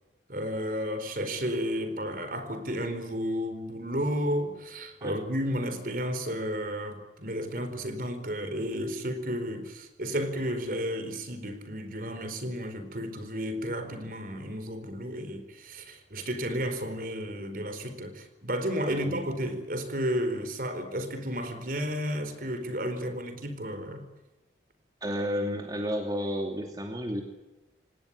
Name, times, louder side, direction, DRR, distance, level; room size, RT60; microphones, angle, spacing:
voice 1, 0.3-24.0, equal, 50° right, 10 dB, 4.5 m, -32 dB
voice 2, 18.9-19.2 25.0-27.2, equal, 20° right, 2 dB, 2.6 m, -32 dB
26.5 x 18.5 x 8.5 m, 1.1 s
head